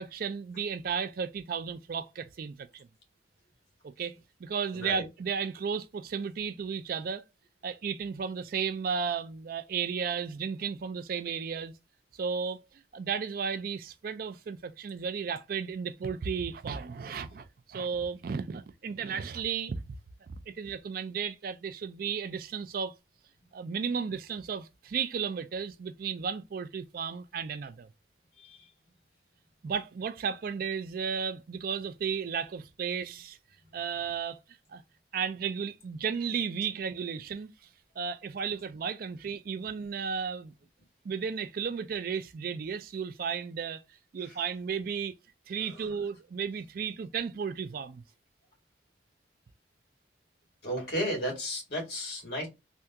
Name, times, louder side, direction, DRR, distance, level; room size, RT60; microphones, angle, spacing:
voice 1, 0.0-2.9 4.0-4.1 4.4-7.2 7.6-11.7 12.2-12.6 12.9-19.8 20.5-22.9 23.5-27.9 29.6-33.4 33.7-34.4 34.7-34.8 35.1-37.5 38.0-40.5 41.0-43.8 44.1-45.1 45.5-48.0, right 6 dB, 50° right, 0.3 m, -34 dB
voice 2, 4.7-5.0 28.4-28.7 45.8-45.9 50.6-52.5, equal, 60° left, 1.9 m, -33 dB
3.5 x 2.3 x 2.7 m
head